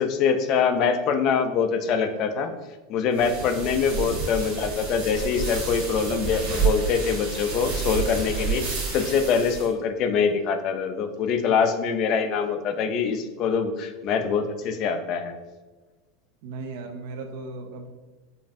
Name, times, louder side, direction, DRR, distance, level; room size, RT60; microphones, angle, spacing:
voice 1, 0.0-2.5 2.9-15.4, left 6 dB, 35° left, 7 dB, 0.3 m, -24 dB
sound 1, 3.1-9.7, right 5 dB, 90° right, 1.4 m, -29 dB
voice 2, 16.4-17.9, right 3 dB, 60° right, 4 dB, 0.4 m, -36 dB
5.1 x 2.5 x 2.5 m, 1.2 s
supercardioid pair, 170°, 0 cm